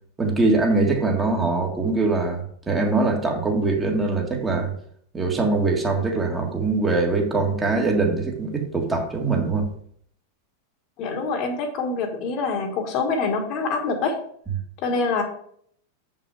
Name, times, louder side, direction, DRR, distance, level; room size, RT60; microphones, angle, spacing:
voice 1, 0.2-4.7 5.1-9.7, right 3 dB, 15° right, 1.7 m, -22 dB
voice 2, 11.0-14.2 14.8-15.2, left 4 dB, 40° left, 1.5 m, -25 dB
7.7 x 5.6 x 4.8 m
figure-of-eight pair, 90°, 0 cm